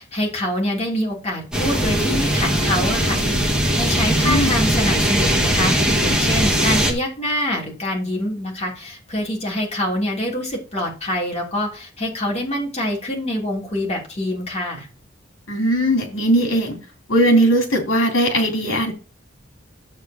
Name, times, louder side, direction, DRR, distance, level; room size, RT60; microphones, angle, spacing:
voice 1, 0.0-5.7 6.0-14.9, left 1 dB, 35° left, -2 dB, 3.2 m, -25 dB
sound 1, 1.5-6.9, equal, 5° right, 1.9 m, -19 dB
voice 2, 4.2-4.5 15.5-16.8 17.1-18.9, right 1 dB, 80° left, 1 dB, 3.4 m, -19 dB
10.5 x 7.8 x 2.9 m, 0.36 s
head